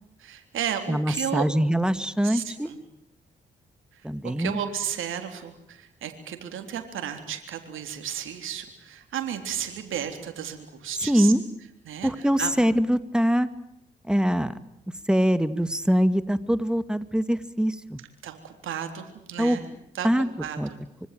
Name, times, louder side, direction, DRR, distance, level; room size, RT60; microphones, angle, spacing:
voice 1, 0.2-1.5 2.2-2.8 3.9-11.3 11.9-12.5 18.2-19.6 19.9-20.8, right 9 dB, 70° right, 6 dB, 3.7 m, -33 dB
voice 2, 0.9-2.7 4.0-4.6 11.0-11.4 12.0-13.5 14.1-14.5 15.1-18.0 19.4-19.6 20.0-20.3 20.6-20.7, equal, 5° right, 12 dB, 2.2 m, -23 dB
25.0 x 25.0 x 7.8 m, 0.80 s
hypercardioid pair, 40°, 21 cm